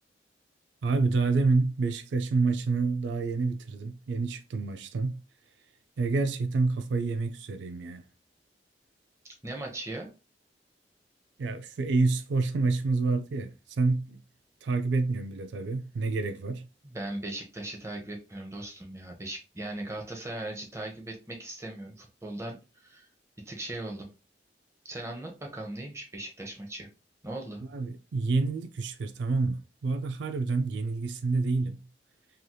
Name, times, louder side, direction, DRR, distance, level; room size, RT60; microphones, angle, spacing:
voice 1, 0.8-5.2 6.0-8.1 11.4-14.2 14.6-16.7 27.7-31.9, right 3 dB, 75° right, 0.3 m, -28 dB
voice 2, 9.4-10.1 16.8-23.1 23.4-24.1 24.8-26.9 27.2-27.6, right 1 dB, 15° right, 0.8 m, -38 dB
3.2 x 2.8 x 2.2 m
head